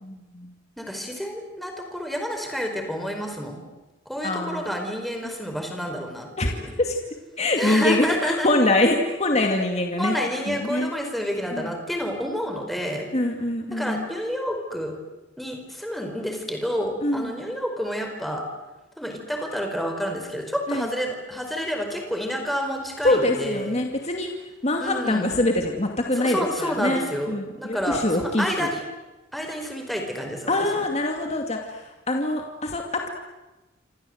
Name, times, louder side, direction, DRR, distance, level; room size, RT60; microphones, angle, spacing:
voice 1, 0.0-0.5 4.2-4.7 6.4-6.5 6.8-7.0 7.4-10.2 10.5-10.9 11.5-11.7 13.1-14.1 17.0-17.3 20.7-20.9 23.0-24.3 24.6-28.7 30.5-33.1, left 2 dB, 35° left, 2 dB, 2.4 m, -24 dB
voice 2, 0.8-3.6 4.0-6.7 7.6-8.5 10.0-13.1 13.7-14.9 15.4-18.4 19.0-23.8 24.8-25.4 26.1-28.8 29.3-30.8, equal, ahead, 3 dB, 4.8 m, -29 dB
28.0 x 26.0 x 8.0 m, 1.1 s
head